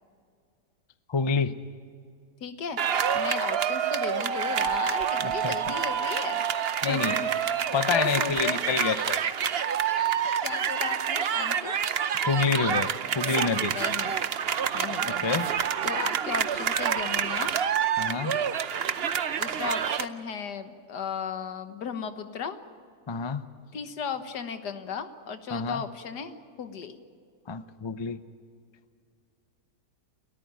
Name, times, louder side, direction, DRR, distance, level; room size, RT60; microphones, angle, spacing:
voice 1, 1.1-1.5 5.2-5.5 6.8-7.2 7.7-9.2 9.9-10.1 12.2-13.7 15.1-15.5 18.0-18.4 23.1-23.4 25.5-25.8 27.5-28.2, left 5 dB, 35° left, 12 dB, 0.4 m, -28 dB
voice 2, 2.4-6.4 6.9-7.6 7.9-8.6 10.4-11.8 13.6-14.2 14.7-15.3 15.8-17.6 19.3-22.6 23.7-27.0, left 6 dB, 80° left, 9 dB, 1.9 m, -35 dB
sound 1, 2.8-20.0, right 8 dB, 50° right, 0.8 m, -27 dB
29.5 x 14.0 x 9.1 m, 2.2 s
omnidirectional pair, 1.7 m